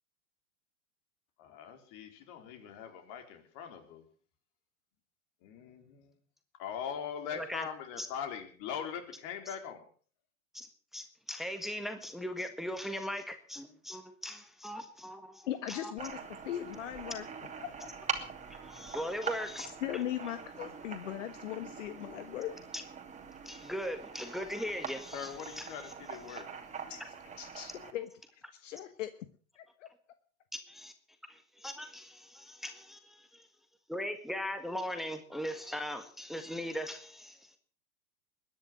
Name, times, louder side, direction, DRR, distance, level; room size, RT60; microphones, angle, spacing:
voice 1, 1.4-4.0 5.4-6.1 6.6-9.9 25.1-26.5, left 8 dB, 45° left, 6 dB, 4.2 m, -41 dB
voice 2, 7.3-7.7 8.0-8.1 10.5-10.7 10.9-15.9 18.5-19.7 22.7-22.8 23.4-25.9 26.3-26.4 30.5-30.9 31.3-33.0 33.3-33.4 33.9-37.6, equal, ahead, 8 dB, 1.7 m, -39 dB
voice 3, 15.5-17.2 17.6-17.9 19.8-22.5 26.9-27.0 27.4-28.1 28.6-29.1 29.5-29.9, left 12 dB, 65° left, 10 dB, 1.4 m, -39 dB
sound 1, 16.0-27.9, right 6 dB, 15° right, 2.8 m, -43 dB
21.5 x 10.5 x 6.4 m, 0.43 s
hypercardioid pair, 100°, 41 cm